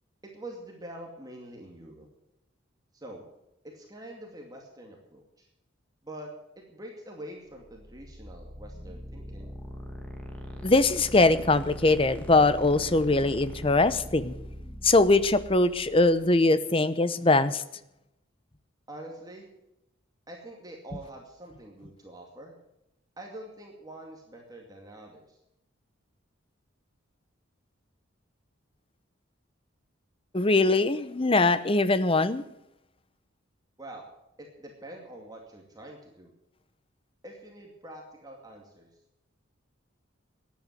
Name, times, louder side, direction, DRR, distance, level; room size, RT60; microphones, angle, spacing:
voice 1, 0.2-2.1 2.9-3.3 3.7-5.5 6.0-6.3 6.7-9.5 18.9-19.5 20.3-22.5 23.2-25.4 33.8-34.1 34.6-36.3 37.2-38.9, right 1 dB, 20° right, 0 dB, 2.3 m, -45 dB
sound 1, 7.6-16.4, equal, 5° left, 2.2 m, -42 dB
voice 2, 10.6-14.4 14.8-17.6 30.3-32.4, left 2 dB, 30° left, 14 dB, 0.8 m, -22 dB
14.5 x 10.5 x 7.9 m, 0.86 s
head